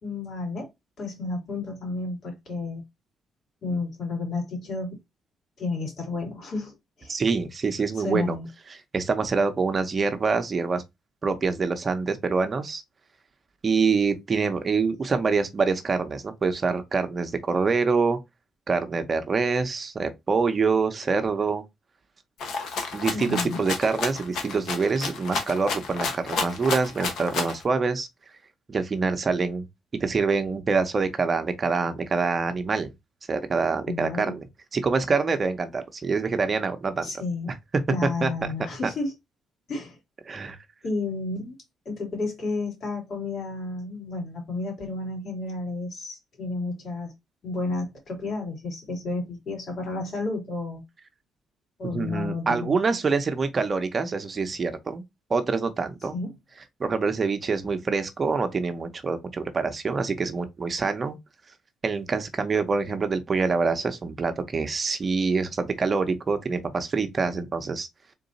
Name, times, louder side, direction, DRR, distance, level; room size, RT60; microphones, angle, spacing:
voice 1, 0.0-0.7 1.0-2.8 3.6-5.0 5.6-7.1 7.9-8.5 23.1-23.6 33.9-34.4 37.0-37.6 37.9-39.1 39.7-40.0 40.8-41.6 41.8-47.1 47.4-50.8 51.8-52.8 56.1-56.3, left 3 dB, 60° left, 2.6 m, -31 dB
voice 2, 7.1-8.4 8.9-10.8 11.2-12.8 13.6-18.2 18.7-21.6 22.9-28.1 28.7-29.7 30.0-32.9 33.3-34.5 34.7-37.1 38.0-38.3 40.3-40.6 51.8-55.0 55.3-56.2 56.8-61.2 61.8-67.9, right 4 dB, 35° right, 0.7 m, -25 dB
Rattle (instrument), 22.4-27.6, left 4 dB, 75° left, 1.2 m, -31 dB
3.8 x 2.7 x 4.0 m
cardioid pair, 90°, 0 cm